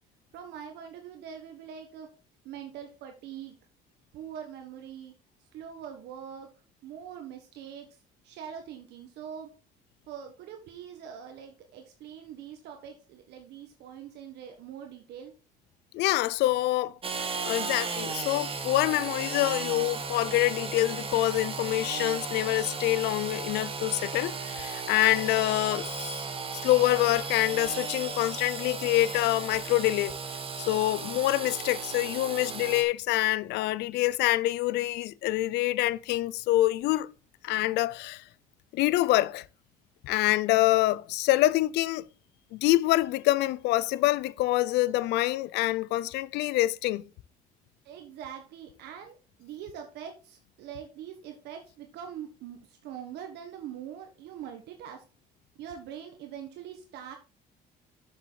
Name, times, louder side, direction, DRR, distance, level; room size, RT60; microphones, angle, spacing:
voice 1, 0.3-2.1 2.4-3.6 4.1-5.1 5.5-6.5 6.8-8.0 8.2-9.5 10.1-15.3 47.8-55.0 55.6-57.2, right 9 dB, 80° right, 1.3 m, -43 dB
voice 2, 15.9-16.9 17.4-26.3 26.6-30.1 30.6-37.1 37.4-38.2 38.7-39.5 40.0-42.1 42.5-47.0, left 16 dB, 85° left, 0.5 m, -26 dB
Engine / Sawing, 17.0-32.8, right 5 dB, 35° right, 1.4 m, -35 dB
7.6 x 6.8 x 3.9 m
cardioid pair, 110°, 17 cm